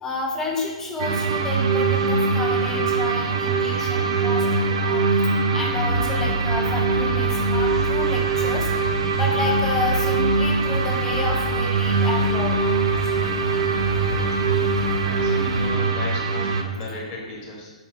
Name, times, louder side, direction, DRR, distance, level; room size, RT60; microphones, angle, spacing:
voice 1, 0.0-5.3 5.5-8.7 9.1-12.6, left 2 dB, 15° left, -1 dB, 0.7 m, -30 dB
sound 1, 1.0-16.6, right 4 dB, 55° right, 0.5 m, -22 dB
sound 2, 5.8-15.7, left 2 dB, 85° left, 0.9 m, -31 dB
voice 2, 13.7-14.3 14.6-17.7, left 2 dB, 35° left, -3 dB, 1.2 m, -36 dB
5.1 x 2.3 x 3.7 m, 1.2 s
figure-of-eight pair, 120°, 4 cm